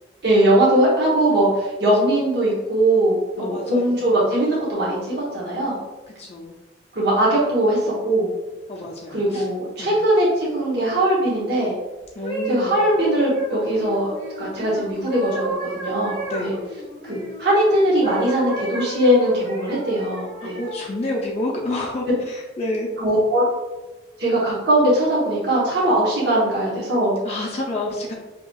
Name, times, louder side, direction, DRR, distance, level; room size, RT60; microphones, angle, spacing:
voice 1, 0.2-5.8 6.9-8.3 9.1-11.8 12.5-16.5 17.0-20.6 23.0-23.4 24.2-27.2, right 1 dB, 60° right, -6 dB, 0.9 m, -20 dB
voice 2, 3.4-4.0 6.2-6.5 8.7-9.5 9.8-10.0 12.2-12.8 16.3-16.6 20.4-22.9 27.2-28.1, left 1 dB, 35° left, -1 dB, 0.4 m, -29 dB
sound 1, 12.0-17.6 18.0-20.9 21.5-21.8, right 1 dB, 35° right, 1.4 m, -31 dB
5.5 x 2.9 x 2.3 m, 1.2 s
head